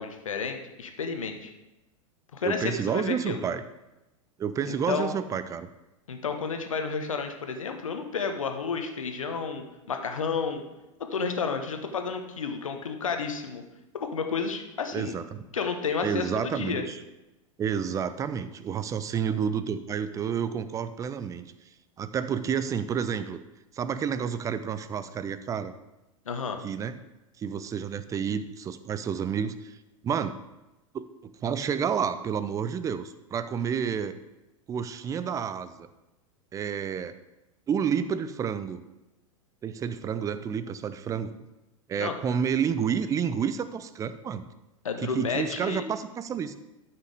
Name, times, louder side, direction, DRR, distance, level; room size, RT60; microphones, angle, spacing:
voice 1, 0.0-1.5 2.3-3.4 4.7-5.2 6.1-10.6 11.1-13.6 13.9-15.2 15.5-16.8 26.2-26.6 42.0-42.1 44.8-45.8, left 5 dB, 70° left, 6 dB, 1.1 m, -31 dB
voice 2, 2.4-3.6 4.4-5.7 14.9-15.4 16.0-17.0 17.6-21.5 22.0-23.4 23.7-25.7 26.6-26.9 27.4-29.8 30.0-30.4 30.9-34.2 34.7-35.9 36.5-37.1 37.7-38.8 39.6-41.3 41.9-44.5 45.0-46.6, right 7 dB, 20° right, 13 dB, 0.5 m, -30 dB
13.0 x 5.9 x 3.5 m, 0.99 s
figure-of-eight pair, 90°, 17 cm